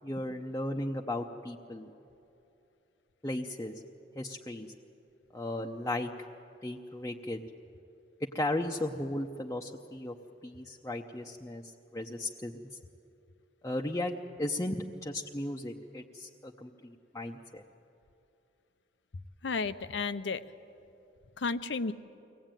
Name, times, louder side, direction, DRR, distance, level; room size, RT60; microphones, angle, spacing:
voice 1, 0.0-1.9 3.2-3.8 4.2-4.7 5.3-6.1 6.6-7.4 8.3-10.1 10.4-11.6 11.9-12.5 13.6-17.6, left 1 dB, 15° left, 0 dB, 0.7 m, -36 dB
voice 2, 19.4-20.4 21.4-21.9, left 4 dB, 80° left, 13 dB, 0.7 m, -32 dB
23.5 x 18.0 x 9.0 m, 2.8 s
head